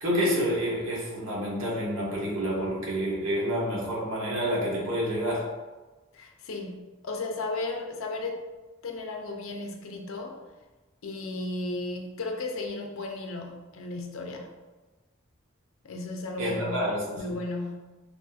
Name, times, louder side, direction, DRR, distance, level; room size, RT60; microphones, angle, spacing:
voice 1, 0.0-5.5 16.4-17.3, equal, 80° right, -5 dB, 1.1 m, -28 dB
voice 2, 6.1-8.4 8.8-10.4 11.0-14.6 15.8-16.8 17.2-18.0, left 2 dB, 80° left, 2 dB, 0.5 m, -35 dB
3.5 x 2.6 x 2.4 m, 1.2 s
head